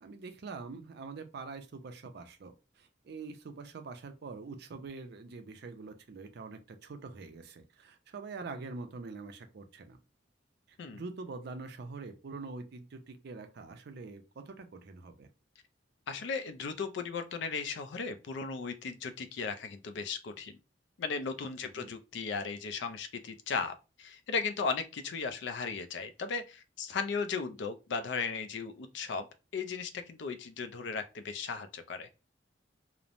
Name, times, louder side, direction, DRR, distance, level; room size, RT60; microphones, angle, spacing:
voice 1, 0.0-10.0 10.7-15.3 21.8-21.9, right 4 dB, 60° right, 0.5 m, -45 dB
voice 2, 16.1-20.6 21.0-29.3 29.5-32.1, left 5 dB, 70° left, 0.4 m, -36 dB
3.0 x 2.0 x 2.5 m
head